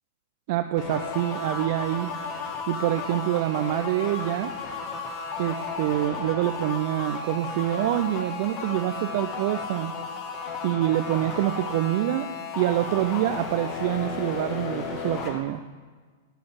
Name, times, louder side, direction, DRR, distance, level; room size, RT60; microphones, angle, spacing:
voice 1, 0.5-2.2 2.7-4.5 5.4-9.9 10.6-12.3 12.6-15.6, right 14 dB, 55° right, 9 dB, 0.4 m, -26 dB
sound 1, 0.8-15.4, left 4 dB, 40° left, 1.5 m, -34 dB
10.5 x 4.3 x 7.5 m, 1.4 s
hypercardioid pair, 100°, 0 cm